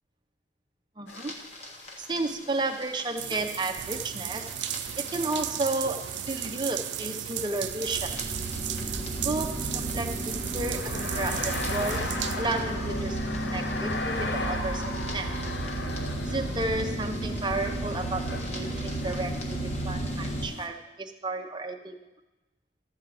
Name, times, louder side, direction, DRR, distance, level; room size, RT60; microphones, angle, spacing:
voice 1, 1.0-1.3 2.0-4.6 5.0-8.3 9.2-14.8 15.1-15.4 16.2-22.0, right 2 dB, 25° right, 4 dB, 0.8 m, -33 dB
sound 1, 1.1-20.7, left 3 dB, 70° left, 1.1 m, -40 dB
sound 2, 1.1-20.5, right 1 dB, 35° left, 1.4 m, -34 dB
sound 3, 3.2-13.0 13.6-13.7 14.3-14.5, right 11 dB, 70° right, 0.4 m, -35 dB
13.0 x 4.7 x 7.6 m, 1.0 s
head